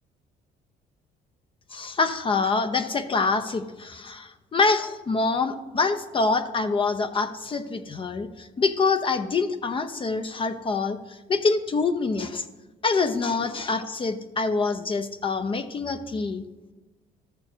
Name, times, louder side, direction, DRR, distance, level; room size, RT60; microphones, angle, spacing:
voice 1, 1.7-12.4 12.8-16.4, left 4 dB, 30° left, 9 dB, 0.8 m, -25 dB
13.0 x 7.0 x 6.2 m, 1.1 s
cardioid pair, 110°, 17 cm